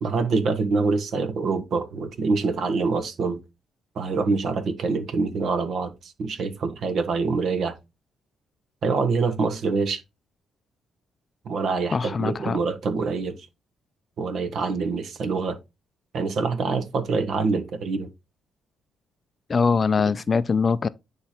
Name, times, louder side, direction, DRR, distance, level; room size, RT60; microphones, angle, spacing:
voice 1, 0.0-3.4 3.9-7.7 8.8-10.0 11.4-13.4 14.2-15.6 16.1-18.1, right 4 dB, 65° right, 1.4 m, -25 dB
voice 2, 11.9-12.6 19.5-20.9, left 5 dB, 35° left, 0.4 m, -22 dB
9.4 x 3.3 x 4.3 m
cardioid pair, 90°, 0 cm